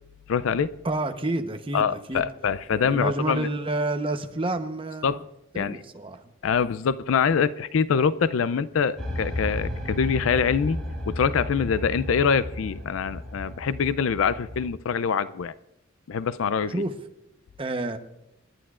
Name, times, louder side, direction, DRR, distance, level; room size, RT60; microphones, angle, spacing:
voice 1, 0.3-0.7 1.7-3.5 5.0-5.2 5.5-5.8 6.4-10.8 11.1-15.5 16.1-16.7, left 6 dB, 85° left, 0.4 m, -24 dB
voice 2, 0.8-2.3 2.7-5.3 5.5-6.3 16.7-16.9 17.6-18.0, right 2 dB, 25° right, 0.9 m, -29 dB
sound 1, 9.0-14.7, left 1 dB, ahead, 4.3 m, -33 dB
28.0 x 11.5 x 2.4 m
head